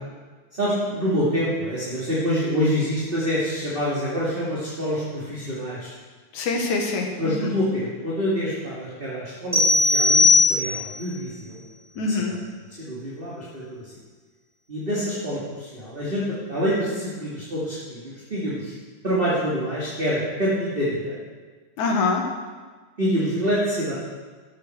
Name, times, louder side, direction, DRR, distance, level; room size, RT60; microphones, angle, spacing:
voice 1, 0.5-5.9 7.2-11.6 11.9-12.4 12.8-13.9 14.7-18.7 19.0-21.2 23.0-23.9, equal, 20° right, -8 dB, 2.3 m, -26 dB
voice 2, 6.3-7.5 12.0-12.3 21.8-22.2, left 3 dB, 65° left, 1 dB, 2.9 m, -24 dB
sound 1, 9.5-11.0, left 3 dB, ahead, 1.4 m, -18 dB
13.5 x 8.2 x 6.5 m, 1.4 s
omnidirectional pair, 3.7 m